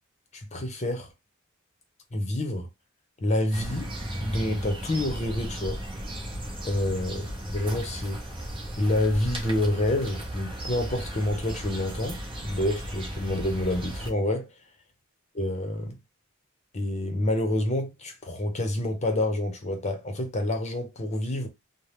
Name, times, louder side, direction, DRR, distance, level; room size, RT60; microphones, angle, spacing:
voice 1, 0.3-1.1 2.1-2.7 3.2-3.9 4.2-5.8 6.6-8.2 8.8-14.5 15.3-16.0 16.7-21.5, left 1 dB, 35° left, 0.8 m, -28 dB
sound 1, 3.5-14.1, equal, 25° right, 0.8 m, -35 dB
2.8 x 2.2 x 3.3 m
head